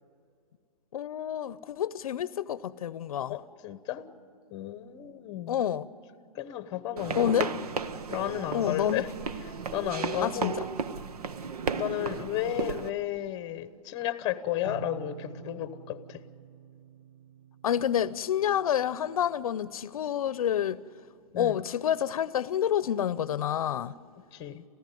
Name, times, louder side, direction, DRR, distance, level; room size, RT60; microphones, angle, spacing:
voice 1, 0.9-3.3 5.5-5.9 7.2-7.5 8.5-9.0 10.2-10.6 17.6-20.8 21.4-24.0, left 10 dB, 70° left, 0.7 m, -28 dB
voice 2, 3.3-4.1 4.5-5.6 6.3-7.3 8.1-9.1 9.7-10.7 11.8-16.2 21.3-21.6 24.3-24.6, left 13 dB, 20° left, 1.0 m, -33 dB
sound 1, 7.0-12.9, right 5 dB, 85° right, 1.1 m, -34 dB
sound 2, 14.6-20.2, right 7 dB, 50° right, 1.0 m, -48 dB
29.0 x 15.0 x 9.3 m
hypercardioid pair, 160°, 19 cm